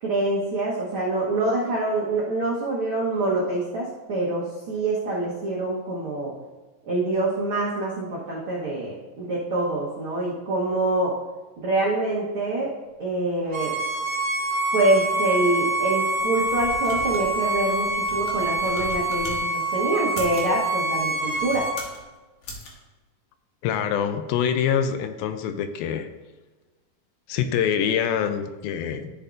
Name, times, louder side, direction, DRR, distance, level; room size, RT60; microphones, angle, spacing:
voice 1, 0.0-6.3 6.8-11.1 11.6-12.7 13.0-13.8 14.7-21.7, right 2 dB, 70° right, -5 dB, 1.2 m, -25 dB
Bowed string instrument, 13.5-21.8, right 2 dB, 45° right, 2.4 m, -26 dB
sound 1, 16.2-19.4 20.0-20.5 21.2-22.0 22.4-22.7, left 1 dB, 55° left, 2.1 m, -39 dB
voice 2, 23.6-26.1 27.3-29.1, left 8 dB, 80° left, 9 dB, 2.4 m, -25 dB
12.5 x 6.9 x 2.5 m, 1.2 s
omnidirectional pair, 4.3 m